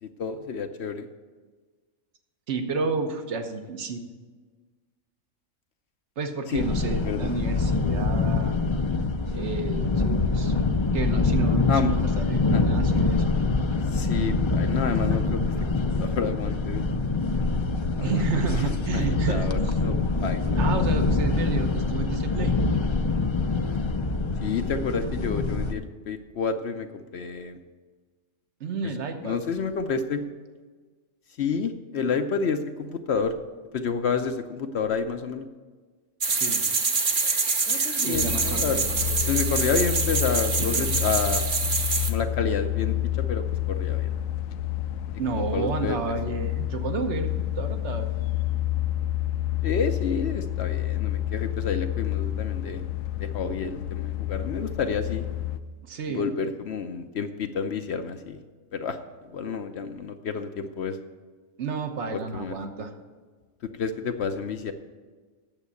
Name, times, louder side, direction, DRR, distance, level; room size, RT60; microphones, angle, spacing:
voice 1, 0.0-1.1 6.5-6.6 6.9-7.3 11.7-11.9 12.5-12.6 13.9-15.4 15.7-16.8 18.0-18.3 18.9-20.6 24.4-27.6 29.2-30.2 31.4-33.3 33.7-35.4 37.7-38.8 39.3-41.4 42.1-43.0 43.3-44.1 45.3-46.2 49.6-52.8 53.2-55.2 56.1-58.4 58.7-59.0 59.3-61.0 62.1-62.6 63.6-64.7, left 5 dB, 60° left, 7 dB, 0.8 m, -29 dB
voice 2, 2.5-4.0 6.2-8.6 9.3-10.5 10.9-13.3 18.0-19.5 20.6-22.6 28.6-29.4 36.3-36.6 38.0-39.3 40.6-41.0 45.2-48.3 55.8-56.3 61.6-62.9, right 4 dB, 60° right, 6 dB, 1.3 m, -31 dB
sound 1, 6.6-25.7, left 3 dB, 40° left, 0.4 m, -25 dB
sound 2, 36.2-42.1, right 4 dB, 40° right, 1.1 m, -26 dB
sound 3, 38.1-55.6, left 13 dB, 85° left, 1.0 m, -29 dB
8.9 x 7.4 x 8.3 m, 1.4 s
omnidirectional pair, 1.4 m